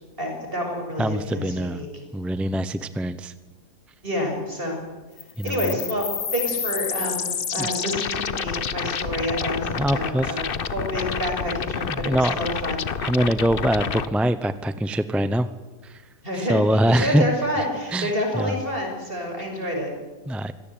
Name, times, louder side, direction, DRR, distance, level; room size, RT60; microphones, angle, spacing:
voice 1, 0.2-1.9 4.0-4.8 5.4-6.1 6.3-12.8 16.2-16.6 16.9-19.9, equal, 35° right, 2 dB, 6.9 m, -28 dB
voice 2, 1.0-1.9 2.1-3.3 5.4-5.7 7.6-7.7 9.8-10.4 11.8-12.4 13.0-15.5 15.8-16.0 16.3-17.2 17.9-18.6 20.3-20.5, equal, ahead, 12 dB, 0.4 m, -23 dB
sound 1, 5.2-14.1, left 7 dB, 45° left, 0.9 m, -29 dB
25.0 x 17.5 x 9.1 m, 1.3 s
omnidirectional pair, 1.7 m